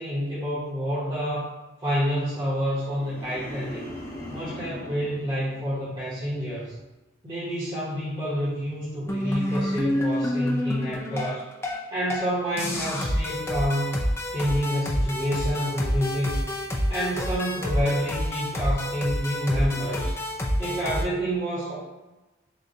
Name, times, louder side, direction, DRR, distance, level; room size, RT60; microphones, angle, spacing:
voice 1, 0.0-1.5 1.8-3.8 4.3-6.7 7.2-11.5 11.9-14.0 14.3-16.4 16.9-20.2 20.6-21.8, equal, 25° right, -8 dB, 0.9 m, -28 dB
sound 1, 2.7-6.1 6.5-6.9, left 1 dB, 50° left, 1.0 m, -41 dB
sound 2, 9.1-11.8 12.1-12.3 12.6-21.0, left 1 dB, 15° left, 0.4 m, -28 dB
6.3 x 2.2 x 2.7 m, 1.1 s
head